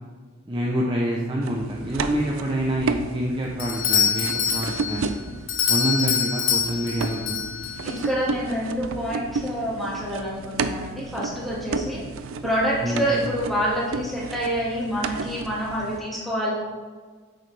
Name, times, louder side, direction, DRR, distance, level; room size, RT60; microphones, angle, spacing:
voice 1, 0.5-5.1 5.7-7.4 12.8-13.1, right 1 dB, 25° right, -3 dB, 0.7 m, -26 dB
sound 1, 1.4-5.5 6.5-16.0, right 4 dB, 85° right, 0.5 m, -33 dB
Doorbell, 3.6-8.1, left 7 dB, 70° left, 1.0 m, -25 dB
voice 2, 7.8-12.0 12.4-16.5, equal, ahead, -6 dB, 2.0 m, -27 dB
8.9 x 6.5 x 3.4 m, 1.4 s
head